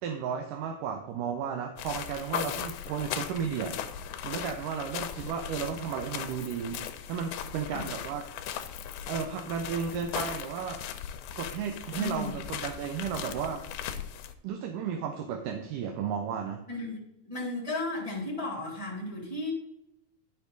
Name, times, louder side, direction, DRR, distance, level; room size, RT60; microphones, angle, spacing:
voice 1, 0.0-3.8 4.2-8.2 9.1-10.9 11.4-13.6 14.4-16.6, right 7 dB, 90° right, 3 dB, 2.4 m, -34 dB
sound 1, 1.8-14.3, left 9 dB, 85° left, 2.2 m, -38 dB
voice 2, 12.0-12.3 16.7-17.0 17.2-19.5, left 2 dB, 10° left, -2 dB, 2.5 m, -34 dB
10.0 x 6.5 x 3.9 m, 0.82 s
omnidirectional pair, 3.6 m